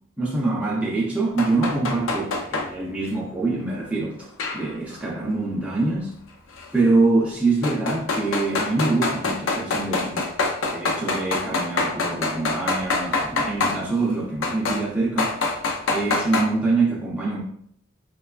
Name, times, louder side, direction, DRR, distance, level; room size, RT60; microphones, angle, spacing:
voice 1, 0.2-4.3 4.5-6.1 6.7-10.3 10.7-15.3 15.9-17.4, right 3 dB, 5° right, -6 dB, 0.4 m, -24 dB
sound 1, 1.4-2.7 4.4-5.0 6.6-6.7 7.6-13.8 14.4-14.8 15.2-16.4, left 3 dB, 70° left, 0.4 m, -25 dB
3.0 x 2.2 x 2.3 m, 0.68 s
head